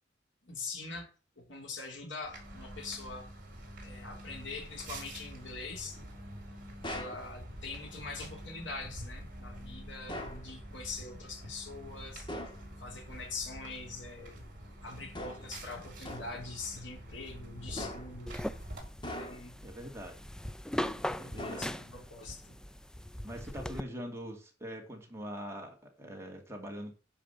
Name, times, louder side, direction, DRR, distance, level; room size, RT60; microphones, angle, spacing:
voice 1, 0.4-1.1 1.4-3.3 3.8-6.0 6.9-12.3 12.8-14.5 14.8-18.5 18.9-19.5 21.2-22.6, left 3 dB, 85° left, 2 dB, 3.2 m, -43 dB
sound 1, 2.2-18.8, right 1 dB, 50° right, 4.5 m, -47 dB
sound 2, 6.8-7.3 10.1-10.5 12.3-12.7 15.1-15.6 16.0-16.4 17.8-18.2 19.0-19.6 21.4-22.0, left 1 dB, 25° left, 2.0 m, -41 dB
sound 3, 18.3-23.8, left 1 dB, 5° left, 0.4 m, -39 dB
voice 2, 19.6-20.2 21.1-21.7 23.2-26.9, equal, 15° right, 1 dB, 2.3 m, -43 dB
10.0 x 5.0 x 7.2 m, 0.36 s
head